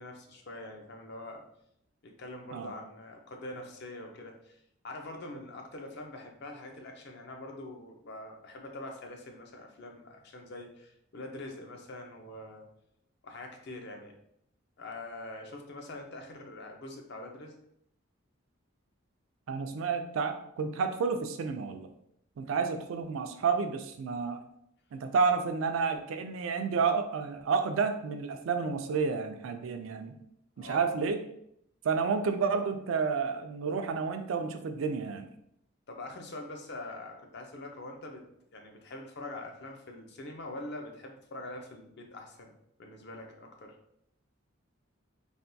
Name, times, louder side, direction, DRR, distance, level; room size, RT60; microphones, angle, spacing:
voice 1, 0.0-1.4 2.0-4.6 4.8-12.7 13.2-14.2 14.8-17.6 30.6-30.9 35.9-38.2 38.5-42.5 42.8-43.7, left 2 dB, 55° left, 2 dB, 0.5 m, -44 dB
voice 2, 19.5-21.9 22.4-24.4 24.9-30.1 30.6-31.2 31.8-35.3, right 5 dB, 80° right, 7 dB, 0.3 m, -30 dB
3.4 x 2.2 x 2.6 m, 0.74 s
head